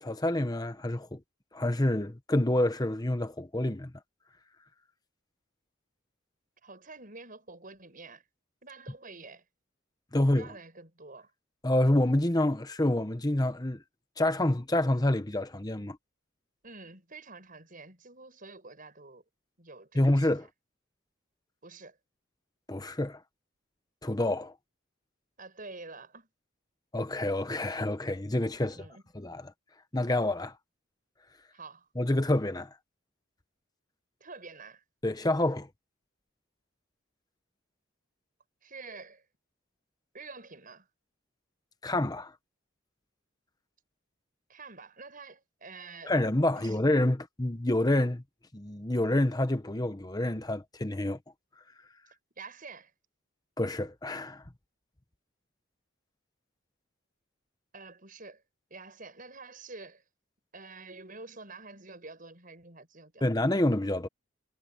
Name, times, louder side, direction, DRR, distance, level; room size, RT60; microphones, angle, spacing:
voice 1, 0.0-1.2 1.5-3.9 10.1-10.5 11.6-13.8 14.2-16.0 19.9-20.5 22.7-23.2 24.0-24.5 26.9-28.9 29.1-29.5 29.9-30.5 32.0-32.7 35.0-35.7 41.8-42.3 46.0-48.2 48.5-51.2 53.6-54.4 63.2-64.1, left 1 dB, 20° left, 1.0 m, -27 dB
voice 2, 6.6-8.2 8.6-9.4 10.2-11.3 16.6-19.2 19.6-20.3 21.6-22.0 25.4-26.3 28.6-29.0 31.5-31.9 34.2-34.8 38.6-39.2 40.1-40.9 44.5-46.1 46.6-46.8 52.4-52.9 57.7-58.4 58.7-60.0 60.5-63.3, right 3 dB, 45° right, 6.8 m, -48 dB
head